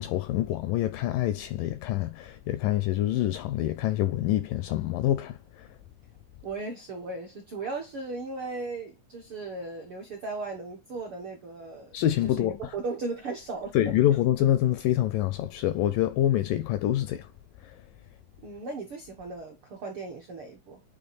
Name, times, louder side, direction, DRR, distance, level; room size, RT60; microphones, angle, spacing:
voice 1, 0.0-5.7 11.9-12.6 13.7-17.3 17.6-17.8, left 13 dB, 80° left, 2.0 m, -26 dB
voice 2, 6.4-12.0 12.2-13.9 18.4-20.8, right 3 dB, 70° right, 1.3 m, -37 dB
9.1 x 3.5 x 4.1 m
omnidirectional pair, 4.4 m